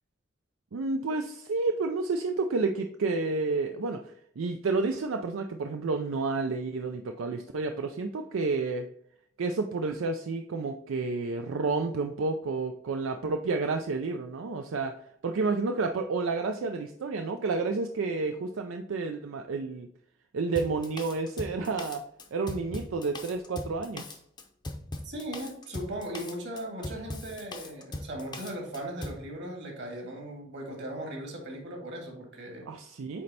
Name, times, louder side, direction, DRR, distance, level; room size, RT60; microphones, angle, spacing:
voice 1, 0.7-8.9 9.4-15.0 15.2-19.9 20.3-22.0 22.3-24.2 32.7-33.2, right 3 dB, 85° right, 5 dB, 0.4 m, -30 dB
Drum kit, 20.6-29.2, left 2 dB, 20° left, 0.6 m, -40 dB
voice 2, 25.0-32.7, right 1 dB, 60° right, 1 dB, 1.9 m, -38 dB
8.3 x 3.2 x 4.1 m, 0.70 s
head